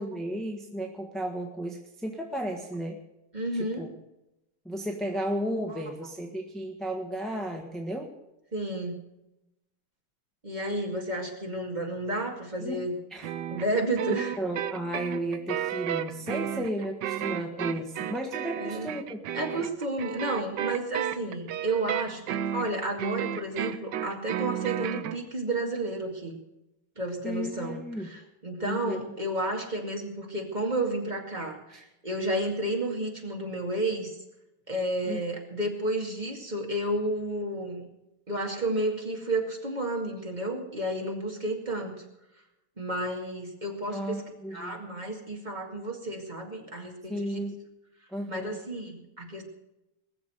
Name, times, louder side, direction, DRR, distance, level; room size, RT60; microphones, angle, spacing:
voice 1, 0.0-3.0 3.5-3.9 4.6-8.1 12.6-12.8 13.1-13.3 14.1-19.2 19.5-19.6 27.2-28.1 28.6-29.0 31.7-31.8 35.1-35.2 43.9-44.8 47.1-47.5 48.1-48.6, right 1 dB, ahead, 1 dB, 1.0 m, -34 dB
voice 2, 3.3-3.9 5.7-5.8 8.5-9.0 10.4-13.0 13.5-14.3 18.5-18.9 19.3-22.2 22.5-26.3 27.0-34.2 34.7-37.9 38.3-42.0 42.8-44.2 44.5-47.4 48.3-49.4, right 1 dB, 20° right, 1 dB, 2.4 m, -31 dB
sound 1, 13.2-25.2, right 10 dB, 65° right, 1.2 m, -33 dB
20.0 x 7.2 x 7.8 m, 0.90 s
omnidirectional pair, 2.4 m